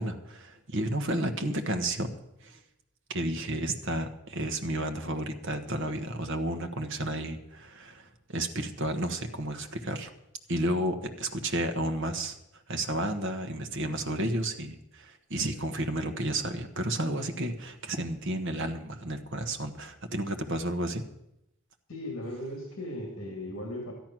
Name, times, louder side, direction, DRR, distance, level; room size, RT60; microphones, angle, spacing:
voice 1, 0.0-2.1 2.4-2.6 3.1-10.1 10.5-12.4 12.7-21.0, right 1 dB, 55° right, 7 dB, 1.2 m, -32 dB
voice 2, 21.9-23.9, left 1 dB, 60° left, 1 dB, 2.4 m, -37 dB
13.0 x 10.5 x 6.1 m, 0.84 s
head